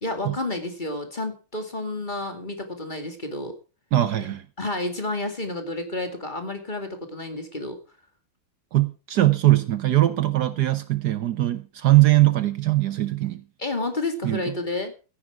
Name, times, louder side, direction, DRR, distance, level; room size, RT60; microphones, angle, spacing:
voice 1, 0.0-3.6 4.6-7.8 13.6-14.9, left 2 dB, 25° left, 2.5 m, -30 dB
voice 2, 3.9-4.5 8.7-13.4 14.2-14.5, right 16 dB, 65° right, 1.3 m, -21 dB
14.0 x 10.5 x 4.8 m
omnidirectional pair, 2.0 m